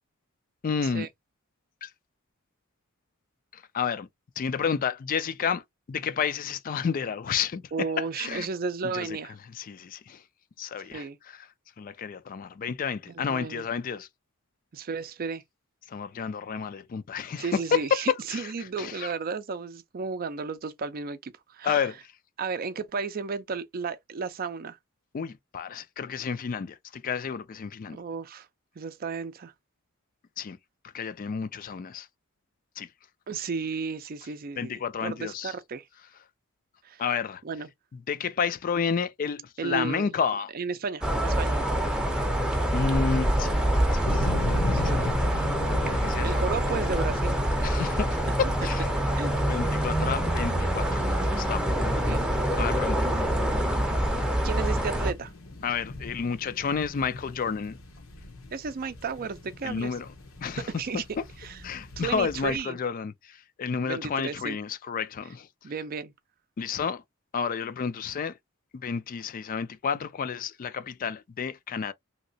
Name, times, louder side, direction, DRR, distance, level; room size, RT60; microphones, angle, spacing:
voice 1, 0.6-1.1 1.8-1.9 3.5-4.1 4.4-5.6 5.9-7.6 8.2-8.5 8.9-9.2 9.5-10.2 10.6-11.1 11.3-11.5 11.8-14.1 15.9-18.0 18.3-18.5 18.8-19.2 21.6-22.0 25.1-28.0 30.4-30.6 30.9-32.1 32.8-32.9 34.6-35.5 37.0-37.4 38.1-40.5 42.7-43.5 43.9-45.0 45.9-46.4 47.6-48.2 48.6-48.9 49.5-51.6 52.6-53.1 55.6-57.8 59.6-60.1 60.4-60.7 61.6-65.5 66.6-67.0 67.3-68.3 68.7-71.9, left 6 dB, 40° left, 0.3 m, -31 dB
voice 2, 7.7-9.4 10.9-11.2 13.1-13.7 14.7-15.4 17.4-21.8 22.4-24.8 27.9-28.5 28.8-29.5 33.3-35.8 36.8-37.0 37.4-37.7 39.6-40.2 40.5-41.6 44.7-45.2 46.2-47.4 49.2-49.3 51.8-52.2 54.4-55.3 58.5-59.9 60.6-61.0 61.4-61.6 62.0-62.8 63.8-64.6 65.6-66.1, right 5 dB, 45° right, 0.4 m, -33 dB
sound 1, 41.0-55.1, right 1 dB, 5° right, 0.6 m, -26 dB
sound 2, 44.0-62.6, left 2 dB, 85° left, 1.0 m, -38 dB
3.1 x 2.9 x 2.6 m
head